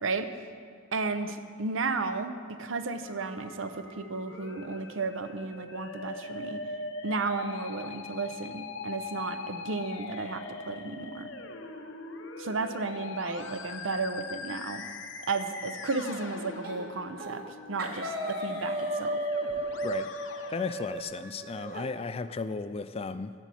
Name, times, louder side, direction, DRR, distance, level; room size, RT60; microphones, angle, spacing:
voice 1, 0.0-0.3 0.9-6.6 7.0-11.3 12.4-14.8 15.3-19.2, right 3 dB, 75° right, 9 dB, 0.8 m, -33 dB
Musical instrument, 3.0-21.0, left 3 dB, 70° left, 0.9 m, -42 dB
sound 1, 16.6-16.9 17.2-17.5 17.8-21.9, right 1 dB, 50° right, 1.5 m, -34 dB
voice 2, 19.8-23.3, left 4 dB, 30° left, 12 dB, 0.4 m, -35 dB
12.5 x 6.2 x 8.4 m, 2.1 s
head